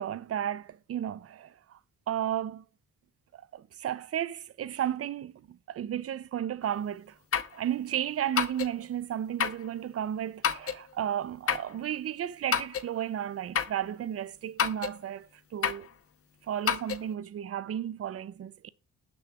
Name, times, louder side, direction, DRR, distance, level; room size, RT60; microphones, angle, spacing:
voice 1, 0.0-1.8 2.1-2.6 3.3-7.2 7.5-15.9 16.5-18.7, right 10 dB, 45° right, 0.6 m, -33 dB
sound 1, 6.6-6.7 7.3-7.6 8.4-8.7 9.4-9.7 10.4-10.8 11.5-11.7 12.5-12.9 13.6-13.8 14.6-15.0 15.6-15.9 16.7-17.0, left 7 dB, 40° left, 0.8 m, -29 dB
6.2 x 5.5 x 3.6 m
supercardioid pair, 55°, 33 cm